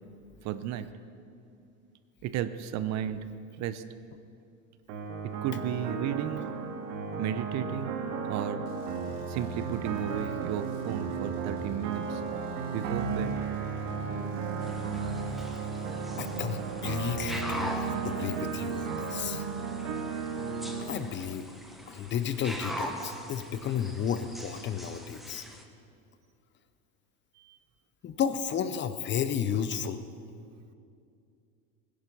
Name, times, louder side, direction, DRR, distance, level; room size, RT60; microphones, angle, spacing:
voice 1, 0.4-0.9 2.2-3.2 3.6-3.8 5.4-6.4 7.2-7.9 8.3-8.7 9.3-12.2 12.7-13.3 27.4-27.6, right 10 dB, 45° right, 12 dB, 0.7 m, -33 dB
sound 1, 4.9-20.8, right 5 dB, 70° right, 1.9 m, -34 dB
sound 2, 8.7-16.0, left 4 dB, 75° left, 3.1 m, -53 dB
sound 3, 14.6-25.6, equal, ahead, 1.2 m, -42 dB
voice 2, 16.2-19.4 20.9-21.5 21.9-25.4 28.0-30.0, left 8 dB, 30° left, 11 dB, 0.6 m, -32 dB
18.0 x 10.5 x 5.5 m, 2.5 s
supercardioid pair, 125°, 38 cm